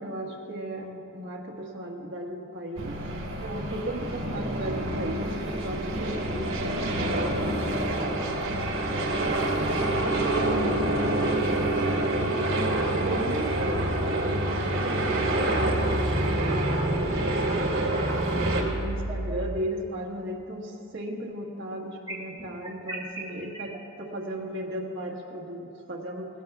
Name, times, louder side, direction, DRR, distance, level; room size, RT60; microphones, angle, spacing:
voice 1, 0.0-2.9 3.4-9.3 10.2-17.7 18.4-26.3, right 1 dB, 55° right, -1 dB, 1.6 m, -36 dB
sound 1, 2.8-18.6, right 1 dB, 75° right, 2.3 m, -27 dB
sound 2, 17.9-18.0 18.5-19.6 22.1-23.8, right 2 dB, 20° right, 1.5 m, -34 dB
19.0 x 17.0 x 2.4 m, 2.6 s
head